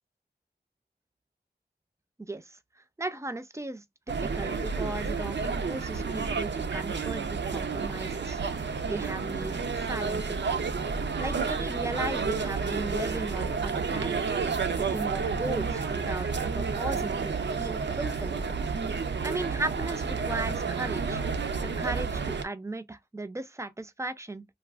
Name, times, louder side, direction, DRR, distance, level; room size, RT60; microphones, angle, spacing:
voice 1, 2.2-2.6 3.0-10.4 11.2-14.2 14.8-18.4 19.2-21.2 21.8-24.5, right 2 dB, 15° right, 0.4 m, -36 dB
sound 1, 4.1-22.4, right 5 dB, 85° right, 0.5 m, -30 dB
3.3 x 2.3 x 2.3 m
wide cardioid pair, 60°, 18 cm